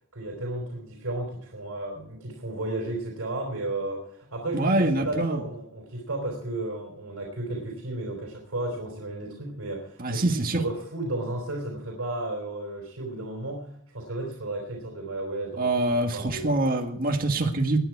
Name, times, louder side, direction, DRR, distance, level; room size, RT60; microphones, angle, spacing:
voice 1, 0.1-16.6, right 2 dB, 60° right, 0 dB, 3.9 m, -33 dB
voice 2, 4.5-5.4 10.0-10.6 15.6-17.8, right 2 dB, 40° right, 4 dB, 1.7 m, -25 dB
20.0 x 9.7 x 4.7 m, 0.67 s
head